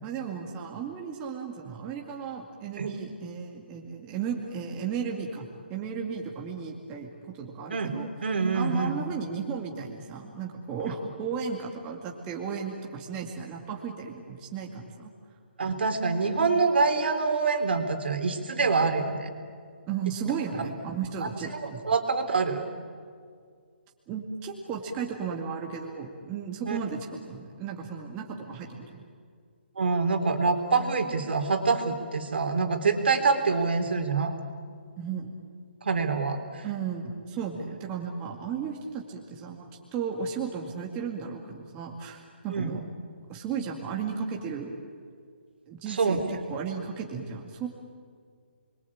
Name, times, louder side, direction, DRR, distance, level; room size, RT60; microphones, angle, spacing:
voice 1, 0.0-8.1 8.5-15.1 19.9-21.8 24.1-29.1 35.0-35.4 36.6-42.8 43.3-44.8 45.7-46.2 46.5-47.7, right 6 dB, 20° right, 0 dB, 2.3 m, -35 dB
voice 2, 8.2-9.0 10.8-10.9 15.6-19.3 21.2-21.3 21.6-22.7 26.7-26.8 29.8-34.3 35.8-36.7 42.5-42.8 45.9-46.3, right 4 dB, 65° right, 5 dB, 3.8 m, -26 dB
29.0 x 22.5 x 8.8 m, 2.1 s
hypercardioid pair, 160°, 6 cm